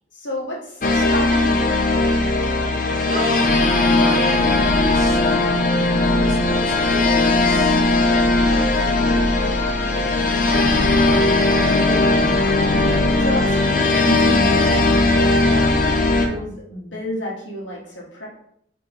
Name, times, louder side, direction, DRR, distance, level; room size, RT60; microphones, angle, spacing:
voice 1, 0.1-1.7 11.1-11.4 11.7-12.1 12.7-18.3, left 1 dB, 85° left, -3 dB, 1.2 m, -31 dB
sound 1, 0.8-16.3, left 2 dB, 45° left, 0.4 m, -18 dB
voice 2, 3.0-5.5 6.2-7.8 8.3-8.9 9.8-10.3, right 1 dB, 40° right, 2 dB, 0.5 m, -33 dB
4.1 x 2.9 x 2.9 m, 0.71 s
head